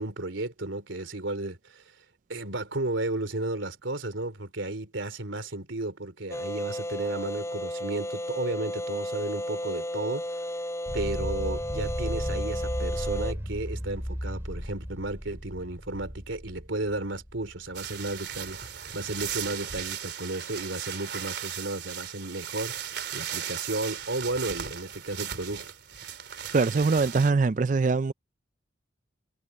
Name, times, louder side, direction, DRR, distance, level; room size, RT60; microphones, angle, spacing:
voice 1, 0.0-1.8 2.3-10.3 10.9-25.7, right 2 dB, 90° right, 3.3 m, -33 dB
sound 1, 6.3-13.3, equal, 15° left, 6.7 m, -33 dB
sound 2, 10.9-18.2, equal, 15° right, 5.1 m, -35 dB
sound 3, 17.7-27.3, right 9 dB, 60° right, 3.5 m, -37 dB
voice 2, 26.5-28.1, right 4 dB, 40° right, 0.4 m, -23 dB
head